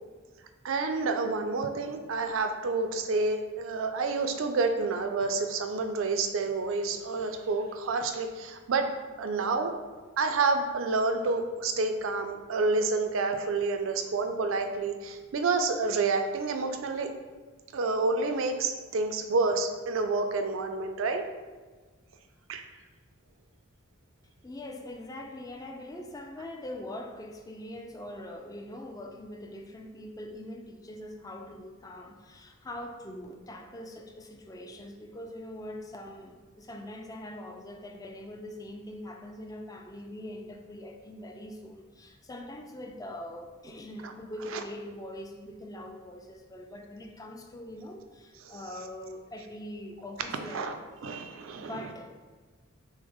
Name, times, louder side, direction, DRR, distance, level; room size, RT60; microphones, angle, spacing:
voice 1, 0.6-8.9 9.2-9.7 10.2-17.1 17.7-21.2 22.5-22.6 48.4-48.5 50.3-50.7 51.0-51.8, right 3 dB, 70° right, 6 dB, 0.4 m, -29 dB
voice 2, 24.4-50.8 51.6-52.3, left 1 dB, 15° left, 3 dB, 0.4 m, -42 dB
6.1 x 2.1 x 3.5 m, 1.4 s
head